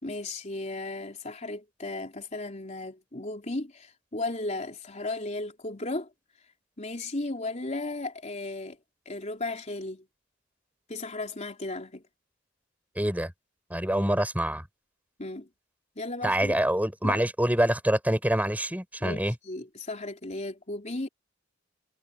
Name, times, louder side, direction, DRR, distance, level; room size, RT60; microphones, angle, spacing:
voice 1, 0.0-6.1 6.8-8.8 9.1-10.1 10.9-12.0 14.0-14.1 15.2-15.5 16.0-16.6 17.0-17.2 19.0-21.1, left 2 dB, 35° left, 3.5 m, -35 dB
voice 2, 13.0-13.3 13.7-14.6 16.2-19.4, right 1 dB, 10° right, 7.3 m, -26 dB
head